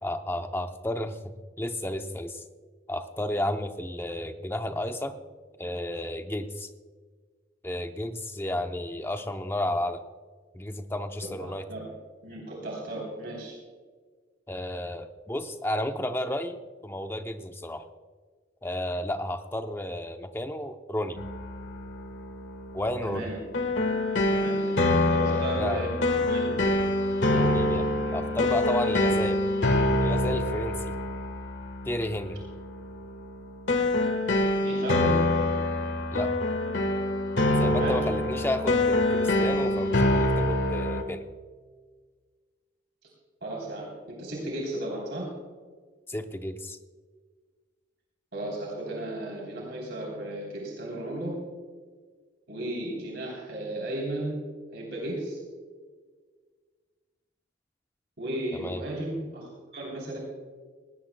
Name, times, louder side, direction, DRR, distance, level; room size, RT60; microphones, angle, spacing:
voice 1, 0.0-2.4 2.9-5.2 5.6-6.7 7.6-10.0 10.5-11.7 14.5-17.9 18.6-21.2 22.7-23.3 25.3-25.8 27.3-29.4 30.0-31.0 31.8-32.4 36.1-36.3 37.6-41.3 46.1-46.8 58.5-58.8, left 1 dB, 10° left, 7 dB, 0.7 m, -32 dB
voice 2, 11.4-11.9 12.2-13.6 23.0-23.3 24.3-26.6 34.6-35.3 37.6-38.0 43.4-45.3 48.3-51.4 52.5-54.4 54.7-55.4 58.2-60.2, right 1 dB, 60° right, -2 dB, 3.5 m, -34 dB
sound 1, 21.2-41.0, left 1 dB, 70° left, 1.5 m, -26 dB
19.5 x 17.5 x 2.3 m, 1.5 s
head